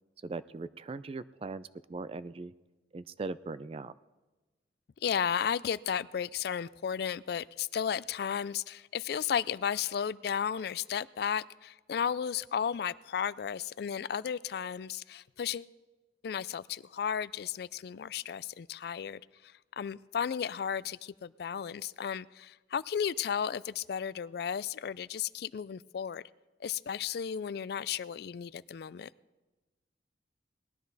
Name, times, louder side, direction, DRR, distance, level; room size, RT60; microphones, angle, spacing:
voice 1, 0.2-2.5 2.9-3.9, right 3 dB, 30° right, 16 dB, 0.3 m, -40 dB
voice 2, 5.0-15.7 16.2-26.2 26.6-29.1, left 8 dB, 60° left, 19 dB, 0.3 m, -34 dB
19.5 x 12.5 x 4.0 m, 1.2 s
head